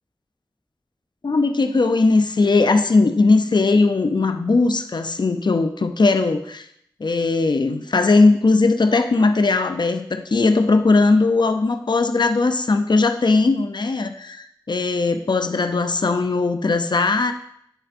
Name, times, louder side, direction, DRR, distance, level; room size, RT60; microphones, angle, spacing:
voice 1, 1.2-6.7 7.0-17.3, left 3 dB, 70° left, 7 dB, 0.4 m, -19 dB
8.7 x 6.6 x 2.6 m, 0.71 s
wide cardioid pair, 55°, 8 cm